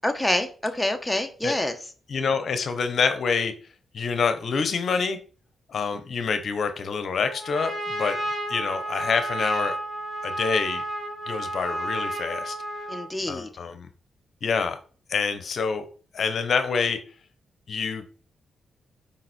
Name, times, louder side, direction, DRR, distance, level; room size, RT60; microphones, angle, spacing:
voice 1, 0.0-1.7 12.9-13.5, left 1 dB, 10° left, 6 dB, 1.3 m, -26 dB
voice 2, 2.1-3.5 3.9-5.2 5.7-8.2 8.5-9.8 10.2-10.8 11.3-12.6 13.3-13.9 14.4-14.8 15.1-15.9 16.1-17.0 17.7-18.1, left 5 dB, 60° left, 9 dB, 0.9 m, -26 dB
Trumpet, 7.2-13.1, right 1 dB, 25° right, 3.0 m, -31 dB
7.4 x 5.0 x 4.3 m, 0.41 s
cardioid pair, 70°, 0 cm